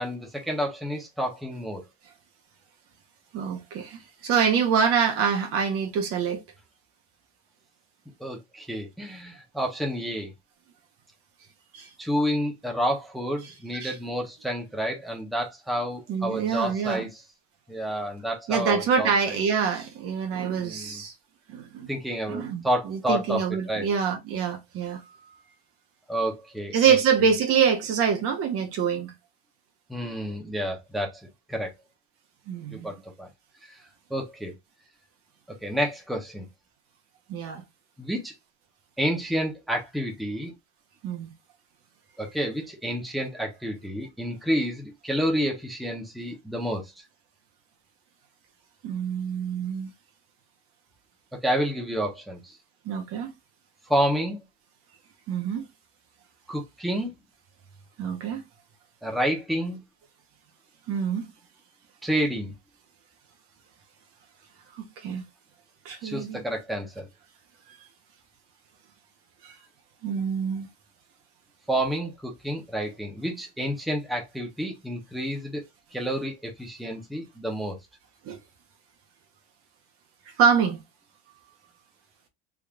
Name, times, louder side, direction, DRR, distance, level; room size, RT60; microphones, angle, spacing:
voice 1, 0.0-1.8 8.2-10.3 12.0-17.2 17.7-19.4 20.6-21.0 21.9-23.4 23.7-23.9 26.1-27.0 29.9-31.2 31.5-31.7 32.7-33.3 33.6-33.7 34.1-34.5 35.6-36.5 38.0-38.3 39.0-40.5 42.2-46.9 51.4-52.6 53.9-54.4 56.5-57.1 59.0-59.8 62.0-62.6 66.0-67.1 71.7-75.6 75.9-77.8, equal, ahead, 0.8 m, -29 dB
voice 2, 3.3-6.4 11.7-11.9 13.8-13.9 16.1-17.0 18.5-21.1 21.5-21.9 22.3-25.0 26.7-29.1 32.5-32.9 37.3-37.6 41.0-41.3 48.8-49.9 52.8-53.3 55.3-55.6 58.0-58.4 60.9-61.3 64.8-65.2 65.8-66.4 69.4-69.5 70.0-70.7 78.2-78.4 80.4-80.8, right 7 dB, 50° right, 1.0 m, -25 dB
3.6 x 3.1 x 2.4 m
cardioid pair, 150°, 30 cm